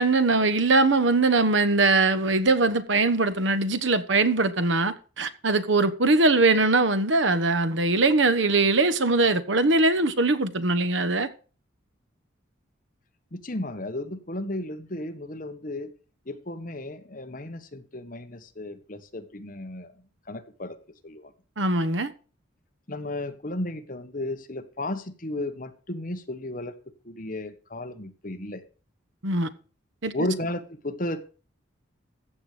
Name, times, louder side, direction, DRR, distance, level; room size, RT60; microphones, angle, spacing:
voice 1, 0.0-11.3 21.6-22.1 29.2-29.5 30.0-30.1, right 3 dB, 70° right, 1.2 m, -21 dB
voice 2, 13.3-15.9 16.2-19.9 20.3-20.8 21.0-21.3 22.9-26.8 27.0-28.6 30.1-31.2, left 1 dB, 45° left, 1.4 m, -34 dB
14.5 x 8.2 x 5.1 m
head